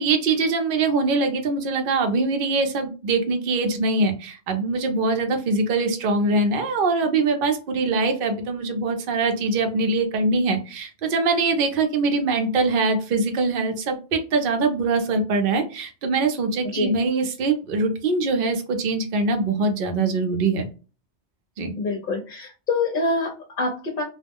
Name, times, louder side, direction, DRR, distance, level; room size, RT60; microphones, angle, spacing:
voice 1, 0.0-20.6 21.6-21.7, right 3 dB, 55° right, 5 dB, 0.7 m, -23 dB
voice 2, 21.8-24.0, left 3 dB, 55° left, 1 dB, 0.7 m, -26 dB
2.3 x 2.0 x 3.4 m, 0.34 s
omnidirectional pair, 1.2 m